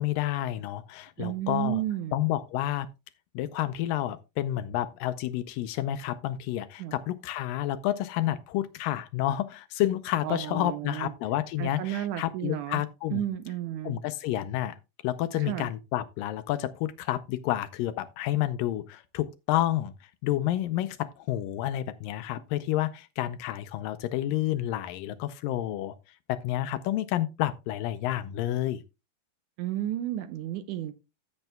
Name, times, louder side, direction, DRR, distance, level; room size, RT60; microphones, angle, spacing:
voice 1, 0.0-1.8 2.1-2.9 3.4-13.2 13.8-14.8 15.0-26.0 26.3-28.8, left 13 dB, 80° left, 2.1 m, -30 dB
voice 2, 1.2-2.2 6.8-7.0 10.2-11.1 11.6-12.8 13.1-14.0 15.4-15.7 29.6-30.9, right 13 dB, 80° right, 1.8 m, -32 dB
15.0 x 7.8 x 2.2 m
omnidirectional pair, 4.2 m